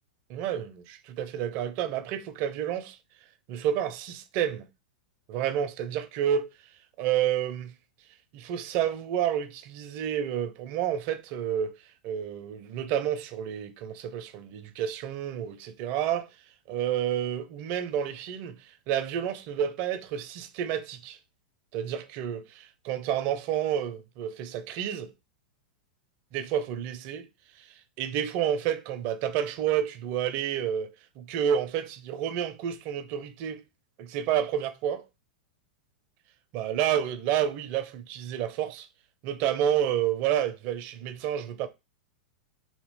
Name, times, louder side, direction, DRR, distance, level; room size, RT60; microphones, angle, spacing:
voice 1, 0.3-3.0 3.5-4.7 5.3-6.5 7.0-7.7 8.3-11.8 12.0-16.3 16.7-18.6 18.9-21.2 21.7-25.1 26.3-27.3 27.6-27.7 28.0-30.9 31.2-33.6 34.0-35.0 36.5-38.9 39.2-41.7, right 10 dB, 45° right, 0.5 m, -30 dB
2.9 x 2.4 x 3.5 m
hypercardioid pair, 100°, 5 cm